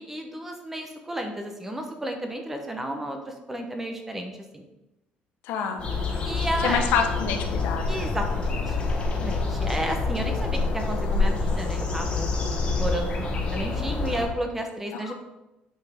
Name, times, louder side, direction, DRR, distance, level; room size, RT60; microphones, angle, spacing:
voice 1, 0.0-4.7 6.2-6.8 7.9-15.1, right 1 dB, 10° right, 4 dB, 0.8 m, -33 dB
voice 2, 5.4-5.8 6.6-8.0 14.9-15.1, left 7 dB, 85° left, 5 dB, 1.0 m, -27 dB
sound 1, 5.8-14.3, left 3 dB, 35° left, 1.3 m, -27 dB
8.9 x 5.8 x 3.5 m, 0.98 s
cardioid pair, 165°, 3 cm